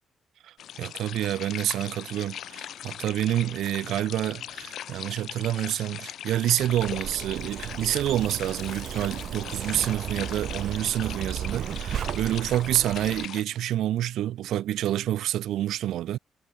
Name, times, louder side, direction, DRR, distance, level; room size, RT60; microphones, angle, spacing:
voice 1, 0.4-16.2, right 12 dB, 90° right, 1.1 m, -28 dB
sound 1, 0.6-13.4, left 10 dB, 65° left, 0.9 m, -40 dB
Zipper (clothing), 6.6-13.3, right 9 dB, 60° right, 0.6 m, -35 dB
cardioid pair, 150°, 0 cm